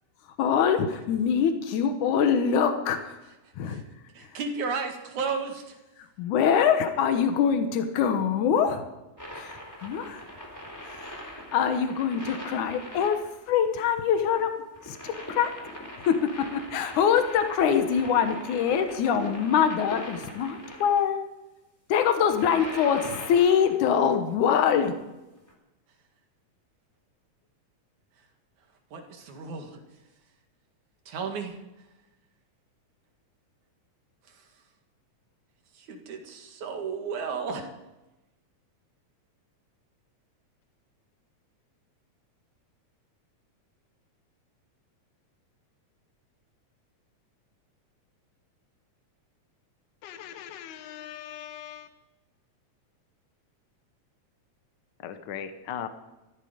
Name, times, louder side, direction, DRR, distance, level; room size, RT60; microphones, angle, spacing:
voice 1, 0.4-3.2 3.6-3.8 4.3-4.4 6.2-8.9 9.3-10.2 10.9-14.5 14.9-15.5 16.1-21.2 21.9-24.9, left 7 dB, 85° left, 7 dB, 2.6 m, -24 dB
voice 2, 4.1-5.8 28.9-29.8 31.1-31.5 35.7-37.7, right 5 dB, 75° right, 3 dB, 3.3 m, -33 dB
sound 1, 9.2-21.0 22.1-23.9 25.5-25.6, equal, 5° left, 3.7 m, -41 dB
voice 3, 50.0-52.0 55.0-55.9, left 9 dB, 55° left, 9 dB, 1.2 m, -39 dB
15.0 x 14.5 x 5.1 m, 1.0 s
omnidirectional pair, 3.4 m